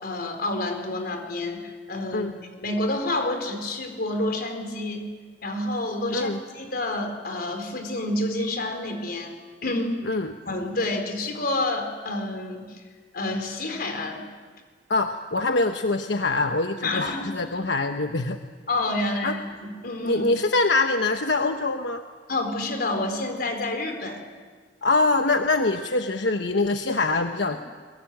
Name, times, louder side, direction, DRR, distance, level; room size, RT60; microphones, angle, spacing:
voice 1, 0.0-2.3 2.6-5.1 5.4-6.3 6.5-9.3 9.6-10.0 10.5-12.8 13.1-14.3 16.8-17.3 18.7-20.2 22.3-24.2, left 2 dB, 60° left, 5 dB, 4.5 m, -28 dB
voice 2, 10.0-10.4 14.9-18.4 19.2-19.4 20.0-22.0 24.8-27.6, left 3 dB, 90° left, 6 dB, 1.1 m, -24 dB
23.5 x 22.0 x 9.2 m, 1.6 s
head